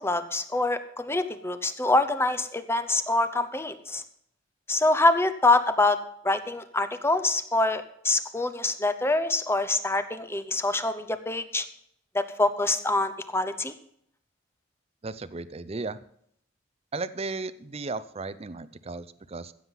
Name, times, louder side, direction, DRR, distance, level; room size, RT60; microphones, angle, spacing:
voice 1, 0.0-4.0 4.7-6.0 6.2-11.7 12.1-13.7, left 2 dB, 15° left, 10 dB, 0.8 m, -25 dB
voice 2, 15.0-16.0 16.9-19.5, right 3 dB, 30° right, 15 dB, 0.6 m, -35 dB
15.5 x 7.8 x 5.6 m, 0.70 s
head